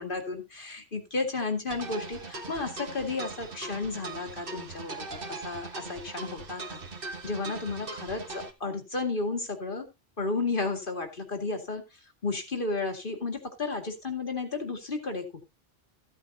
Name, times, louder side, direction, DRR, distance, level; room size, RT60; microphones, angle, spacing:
voice 1, 0.0-9.9 10.2-11.8 12.2-15.2, left 3 dB, 55° left, 4 dB, 2.3 m, -33 dB
sound 1, 1.7-8.5, right 3 dB, 60° right, 1.6 m, -40 dB
15.0 x 8.3 x 2.8 m, 0.24 s
omnidirectional pair, 1.1 m